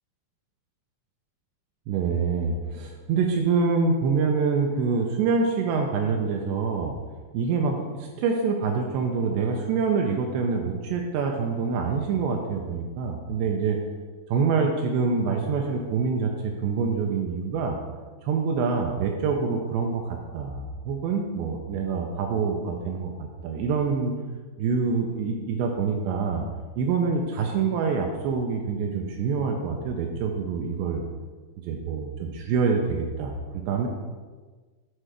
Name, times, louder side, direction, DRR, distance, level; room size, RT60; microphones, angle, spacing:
voice 1, 1.9-7.0 7.3-13.8 14.3-17.8 18.2-24.1 24.6-26.5 26.8-31.0 31.7-33.9, right 5 dB, 80° right, 1 dB, 2.6 m, -26 dB
7.9 x 3.3 x 6.1 m, 1.4 s
omnidirectional pair, 5.0 m